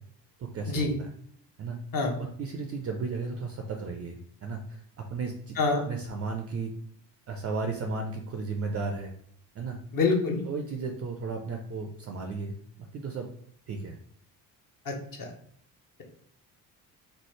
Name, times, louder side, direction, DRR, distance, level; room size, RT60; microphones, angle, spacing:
voice 1, 0.4-1.1 1.6-1.8 2.4-5.6 5.9-6.7 7.3-9.1 9.6-9.8 10.4-13.3 13.7-14.0, right 4 dB, 30° right, 3 dB, 0.4 m, -34 dB
voice 2, 9.9-10.4 14.9-15.3, left 3 dB, 45° left, 1 dB, 0.9 m, -26 dB
3.2 x 2.0 x 3.1 m, 0.66 s
hypercardioid pair, 45°, 49 cm